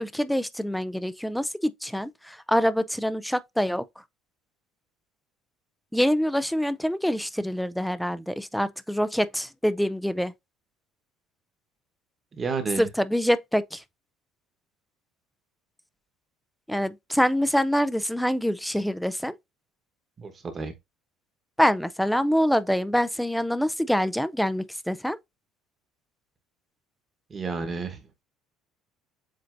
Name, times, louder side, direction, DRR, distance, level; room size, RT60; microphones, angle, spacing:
voice 1, 0.0-3.8 5.9-10.3 12.8-13.8 16.7-19.3 21.6-25.2, equal, ahead, 0.3 m, -25 dB
voice 2, 12.3-12.9 20.2-20.7 27.3-28.0, right 4 dB, 20° right, 1.0 m, -31 dB
7.5 x 2.6 x 2.5 m
cardioid pair, 175°, 0 cm